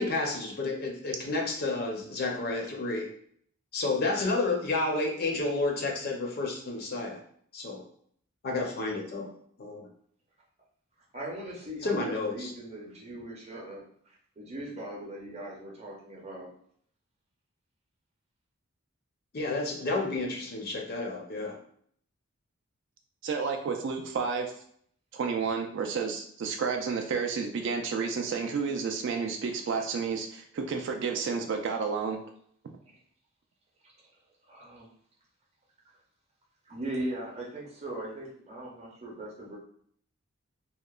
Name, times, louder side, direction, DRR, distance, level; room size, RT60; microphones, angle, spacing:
voice 1, 0.0-3.1 3.7-7.2 7.5-7.8 8.4-9.3 9.6-9.9 11.8-12.5 19.3-21.6, left 3 dB, 45° left, 1 dB, 0.5 m, -30 dB
voice 2, 11.1-13.8 14.4-16.5 32.9-33.0 34.5-34.9 36.7-39.6, right 1 dB, 30° right, -3 dB, 0.6 m, -39 dB
voice 3, 23.2-24.5 25.1-32.2, right 5 dB, 55° right, 4 dB, 0.3 m, -31 dB
2.8 x 2.0 x 2.3 m, 0.63 s
head